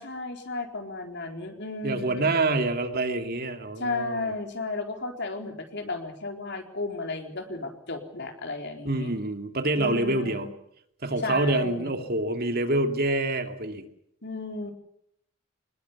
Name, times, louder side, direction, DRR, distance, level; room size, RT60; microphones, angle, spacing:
voice 1, 0.0-2.3 3.8-9.1 9.8-10.5 11.2-11.9 14.2-14.7, left 3 dB, 50° left, 4 dB, 4.2 m, -34 dB
voice 2, 1.8-4.3 8.8-10.5 11.0-13.9, right 2 dB, 45° right, 6 dB, 2.5 m, -26 dB
26.5 x 20.5 x 7.0 m, 0.72 s
head